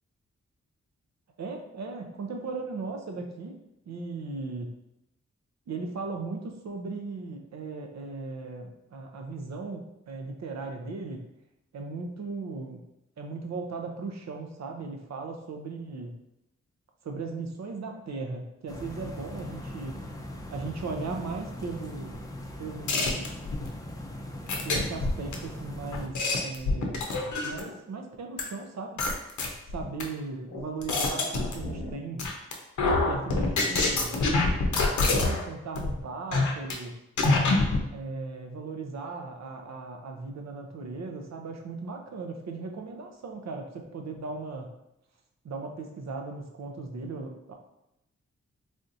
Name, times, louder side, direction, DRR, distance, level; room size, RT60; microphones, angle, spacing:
voice 1, 1.4-3.6 3.9-4.7 5.7-11.2 11.7-12.8 13.2-16.1 17.0-20.0 20.5-22.2 22.6-23.3 24.6-27.0 27.4-29.0 29.7-32.3 33.1-34.4 35.0-37.0 37.9-44.7 45.4-47.5, right 3 dB, 65° right, 3 dB, 0.6 m, -37 dB
sound 1, 18.7-26.1, left 1 dB, 10° left, 0.5 m, -40 dB
sound 2, 22.9-23.7 24.5-25.3 25.9-27.7 28.4-28.5 29.0-30.0 30.5-31.9 32.2-32.5 32.8-35.4 35.7-35.9 36.3-36.7 37.2-37.8, left 3 dB, 80° left, 0.6 m, -26 dB
3.5 x 2.6 x 2.6 m, 0.86 s
cardioid pair, 60°, 29 cm